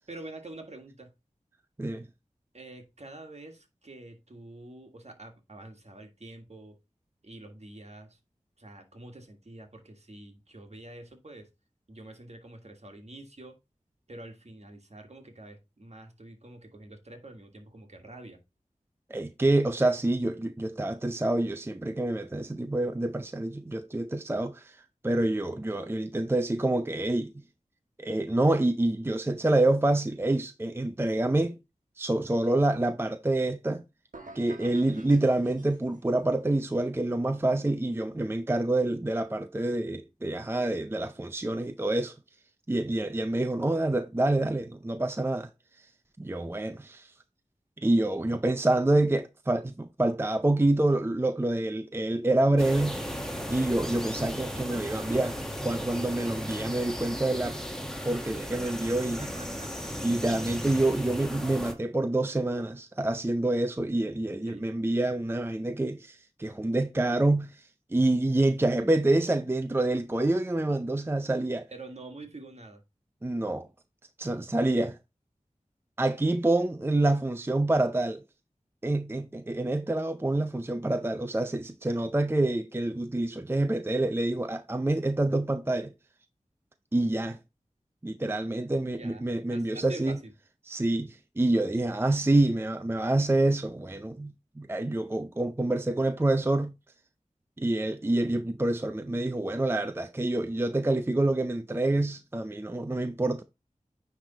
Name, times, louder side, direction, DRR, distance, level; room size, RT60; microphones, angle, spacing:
voice 1, 0.1-1.1 2.5-6.8 7.2-8.2 8.6-11.5 11.9-13.6 14.1-18.4 58.8-60.1 64.5-64.6 71.7-72.8 89.0-90.3, right 2 dB, 55° right, 1.7 m, -46 dB
voice 2, 19.1-27.3 28.0-31.6 32.0-33.8 34.3-42.1 42.7-45.5 45.8-45.9 46.2-47.1 47.8-53.0 53.5-57.6 58.0-59.3 60.0-71.7 73.2-73.7 74.2-75.0 76.0-78.2 78.8-85.9 86.9-87.4 88.0-90.2 90.7-96.7 97.6-103.4, right 2 dB, 15° right, 0.5 m, -27 dB
sound 1, 34.1-36.2, right 2 dB, 85° right, 1.1 m, -50 dB
sound 2, 52.6-61.7, equal, 5° left, 1.4 m, -36 dB
9.5 x 3.4 x 4.1 m
wide cardioid pair, 50°, 13 cm